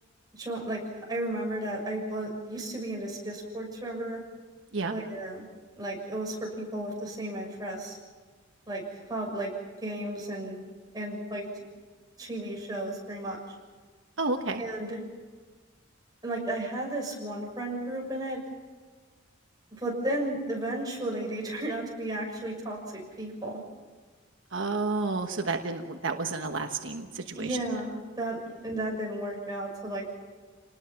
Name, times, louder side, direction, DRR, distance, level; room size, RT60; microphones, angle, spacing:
voice 1, 0.3-4.2 4.9-5.5 5.8-8.0 8.7-8.8 9.1-9.5 9.8-10.6 10.9-11.4 12.2-13.4 14.6-15.0 16.2-18.4 19.8-23.6 27.4-30.0, right 1 dB, 20° right, -1 dB, 6.4 m, -33 dB
voice 2, 14.2-14.6 24.5-27.6, right 3 dB, 70° right, 5 dB, 1.2 m, -30 dB
28.0 x 20.0 x 5.9 m, 1.5 s
head